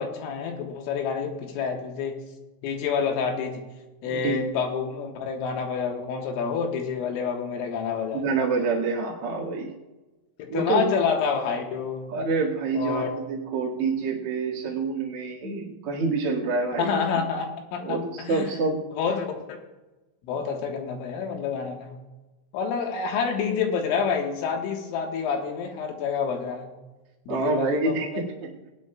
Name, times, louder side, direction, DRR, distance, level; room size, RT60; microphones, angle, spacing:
voice 1, 0.0-2.2 2.6-3.7 4.0-8.2 10.4-12.1 12.7-13.1 16.8-18.5 18.9-19.4 20.2-22.0 22.5-26.7 27.3-28.2, left 6 dB, 80° left, 2 dB, 3.9 m, -28 dB
voice 2, 4.1-4.4 8.1-9.7 10.5-10.9 12.1-17.0 17.8-18.8 20.4-20.5 27.3-28.5, right 3 dB, 60° right, -3 dB, 1.4 m, -27 dB
19.5 x 10.5 x 2.3 m, 1.1 s
omnidirectional pair, 5.9 m